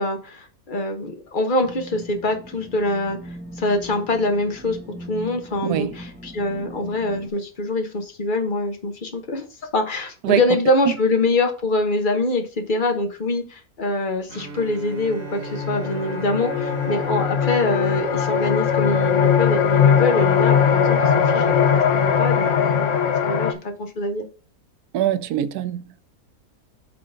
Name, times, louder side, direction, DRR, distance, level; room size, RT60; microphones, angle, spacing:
voice 1, 0.0-3.2 3.6-4.8 5.1-9.4 9.7-21.4 21.7-23.0 23.2-24.2, left 2 dB, 35° left, 1.1 m, -24 dB
sound 1, 1.6-7.3, right 1 dB, 5° right, 1.3 m, -39 dB
voice 2, 5.6-6.0 10.2-10.4 10.9-11.0 24.9-25.8, right 11 dB, 85° right, 1.1 m, -22 dB
Bowed string instrument, 14.3-19.1, right 5 dB, 60° right, 1.3 m, -38 dB
sound 2, 14.6-14.7 15.1-23.5, left 7 dB, 60° left, 1.1 m, -20 dB
6.5 x 3.9 x 5.0 m
omnidirectional pair, 1.6 m